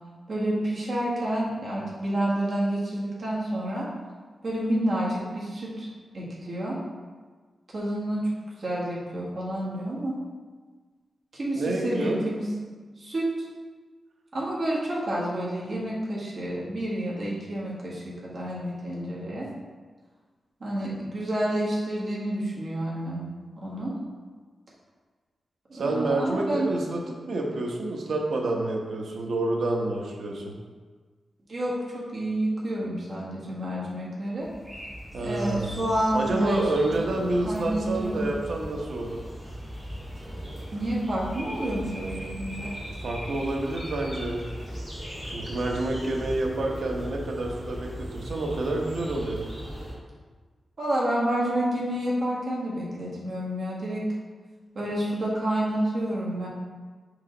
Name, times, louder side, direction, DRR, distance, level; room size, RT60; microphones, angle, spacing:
voice 1, 0.3-3.9 4.4-5.9 6.1-6.8 7.7-8.2 8.6-10.2 11.3-12.4 13.0-13.5 14.3-19.5 20.6-23.3 23.6-23.9 25.7-26.7 31.5-34.5 35.2-36.8 37.1-38.2 40.7-42.7 50.8-54.0 54.7-56.5, right 1 dB, 45° right, -6 dB, 1.6 m, -29 dB
voice 2, 11.5-12.2 25.7-30.5 35.1-35.8 36.1-39.2 42.9-44.5 45.3-49.4, right 2 dB, 65° right, 0 dB, 1.0 m, -28 dB
sound 1, 34.4-49.9, equal, 10° right, 1.8 m, -38 dB
5.5 x 4.9 x 3.9 m, 1.4 s
wide cardioid pair, 155°, 0 cm